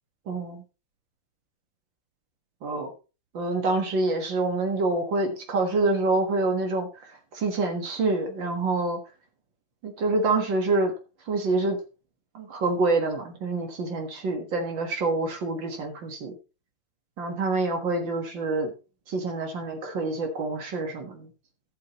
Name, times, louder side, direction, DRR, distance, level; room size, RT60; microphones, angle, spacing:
voice 1, 0.3-0.6 2.6-2.9 3.3-6.9 7.3-9.0 9.8-10.9 11.3-11.8 12.3-16.3 17.2-18.7 19.1-21.3, right 3 dB, 75° right, 3 dB, 2.3 m, -26 dB
13.5 x 8.6 x 3.0 m, 0.31 s
omnidirectional pair, 2.1 m